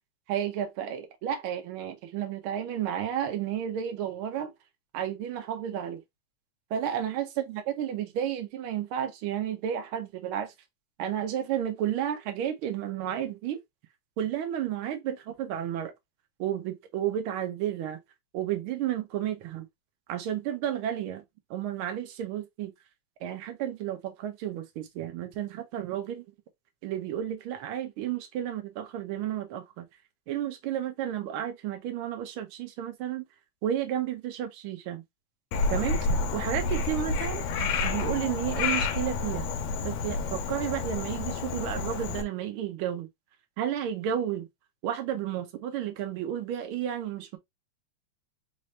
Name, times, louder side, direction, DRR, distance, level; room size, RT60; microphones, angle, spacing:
voice 1, 0.3-4.5 4.9-6.0 6.7-10.5 11.0-13.6 14.2-15.9 16.4-18.0 18.3-19.7 20.1-21.2 21.5-22.7 23.2-26.3 26.8-29.9 30.3-33.2 33.6-35.0 35.7-36.1 36.3-39.5 39.8-43.1 43.6-44.5 44.8-47.4, right 10 dB, 75° right, 1.2 m, -32 dB
Frog, 35.5-42.2, left 4 dB, 75° left, 1.7 m, -29 dB
4.5 x 2.6 x 3.2 m
omnidirectional pair, 3.3 m